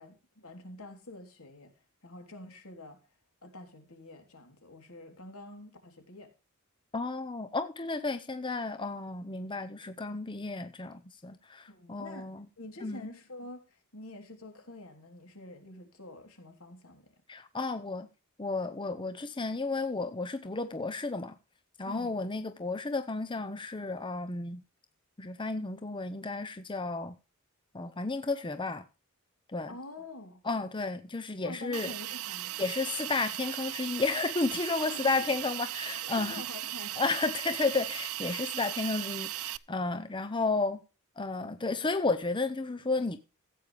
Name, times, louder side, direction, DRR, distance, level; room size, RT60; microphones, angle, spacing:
voice 1, 0.0-1.7 2.0-3.0 3.4-6.3 11.7-12.3 12.6-17.1 21.8-22.2 29.7-30.4 31.4-32.5 34.8-35.1 36.1-37.0, left 2 dB, 75° left, 3.5 m, -47 dB
voice 2, 6.9-12.5 12.8-13.1 17.3-18.1 18.4-21.3 21.8-24.6 25.2-27.2 27.7-28.8 29.5-29.7 30.4-31.9 32.6-36.4 37.0-40.8 41.2-43.2, left 3 dB, 20° left, 0.7 m, -32 dB
Hiss, 31.7-39.6, right 15 dB, 80° right, 0.6 m, -37 dB
15.5 x 8.8 x 3.4 m
head